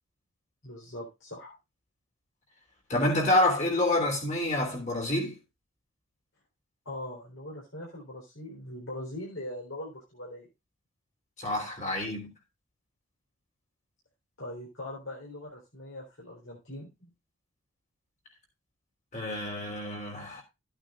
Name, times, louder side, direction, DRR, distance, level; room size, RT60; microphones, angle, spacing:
voice 1, 0.6-1.5 6.9-10.5 14.4-17.1, left 1 dB, 60° left, 3.9 m, -41 dB
voice 2, 2.9-5.4 11.4-12.3 19.1-20.4, left 1 dB, 35° left, 3.3 m, -27 dB
14.0 x 9.0 x 2.4 m
head